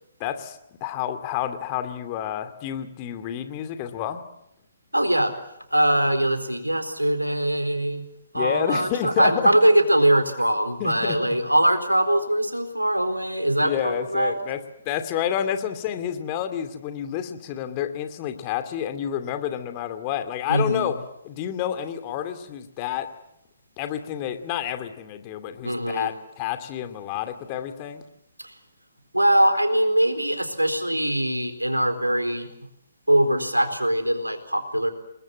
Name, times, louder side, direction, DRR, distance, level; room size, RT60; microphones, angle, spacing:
voice 1, 0.2-4.2 8.3-9.5 10.8-11.2 13.6-14.6 14.8-21.0 21.2-23.1 23.8-28.0, left 10 dB, 30° left, 8 dB, 2.5 m, -29 dB
voice 2, 4.9-5.3 5.7-8.1 8.3-14.3 20.5-20.9 25.6-26.1 28.4-28.5 29.1-32.5 33.1-34.9, right 1 dB, 90° right, 8 dB, 4.2 m, -22 dB
29.0 x 21.0 x 7.8 m, 0.80 s
figure-of-eight pair, 130°, 0 cm